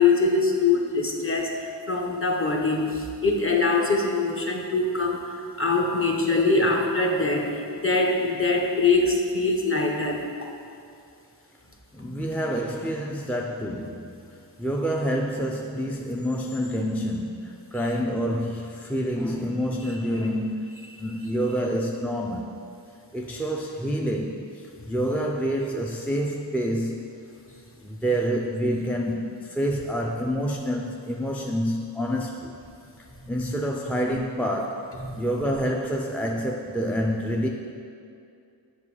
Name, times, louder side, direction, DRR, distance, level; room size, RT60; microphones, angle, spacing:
voice 1, 0.0-10.3 33.4-33.5 35.0-35.2, left 3 dB, 30° left, 0 dB, 1.0 m, -23 dB
voice 2, 11.9-22.5 23.1-27.1 27.8-32.6 33.3-37.5, equal, 5° left, -1 dB, 0.4 m, -28 dB
7.4 x 5.3 x 4.8 m, 2.5 s
wide cardioid pair, 55°, 43 cm